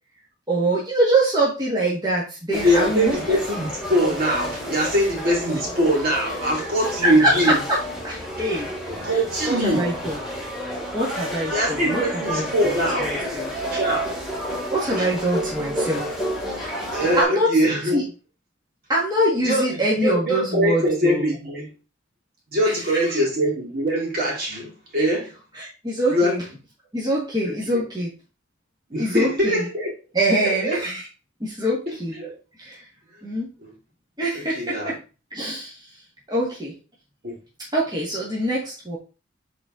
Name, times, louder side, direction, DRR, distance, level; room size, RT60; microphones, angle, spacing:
voice 1, 0.5-3.2 6.6-6.7 7.0-7.8 8.0-8.7 9.5-10.2 10.9-12.8 13.0-13.7 14.7-16.2 16.6-16.7 17.2-17.5 17.9-18.0 18.9-21.3 22.6-23.2 25.0-25.1 25.6-26.4 26.9-28.1 29.0-29.7 30.1-31.1 31.4-32.1 32.6-32.8 33.2-33.5 34.2-35.0 35.3-35.9 36.3-36.7 37.7-39.0, right 1 dB, 20° right, 1.8 m, -24 dB
sound 1, 2.5-17.2, equal, ahead, 3.0 m, -30 dB
voice 2, 2.5-7.6 8.5-8.6 8.9-9.9 11.3-13.0 13.7-14.1 15.0-15.1 16.9-18.0 19.4-21.7 22.5-25.3 26.1-26.4 27.4-27.8 28.9-29.9 30.4-30.8 31.9-32.3 33.6-33.7 34.3-34.9 37.2-37.3, equal, 50° right, 3.3 m, -23 dB
8.3 x 4.2 x 3.8 m
head